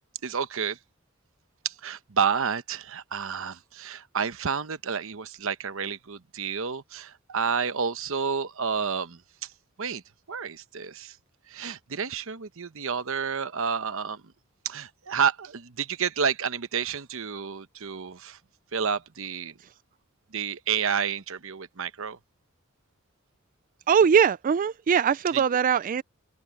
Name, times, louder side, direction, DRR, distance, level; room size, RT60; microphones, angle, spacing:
voice 1, 0.2-0.8 1.6-9.2 9.8-10.0 10.3-11.2 11.5-14.2 14.6-18.4 18.7-19.5 20.3-22.2 25.3-25.4, right 6 dB, 70° right, 0.9 m, -30 dB
voice 2, 23.9-26.0, right 7 dB, 40° right, 0.3 m, -21 dB
open air
head